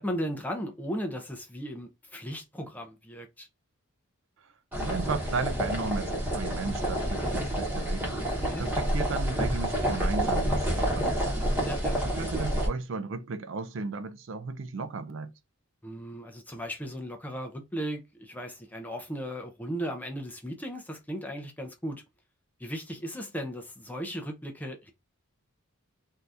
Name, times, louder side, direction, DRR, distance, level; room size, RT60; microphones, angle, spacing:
voice 1, 0.0-3.5 8.3-8.7 11.6-12.0 15.8-22.0 22.6-24.9, equal, 5° left, 0.5 m, -36 dB
sound 1, 4.7-12.7, equal, 10° right, 0.9 m, -29 dB
voice 2, 4.8-8.2 8.6-11.5 12.0-15.3, right 4 dB, 55° right, 0.4 m, -35 dB
2.7 x 2.4 x 3.3 m
head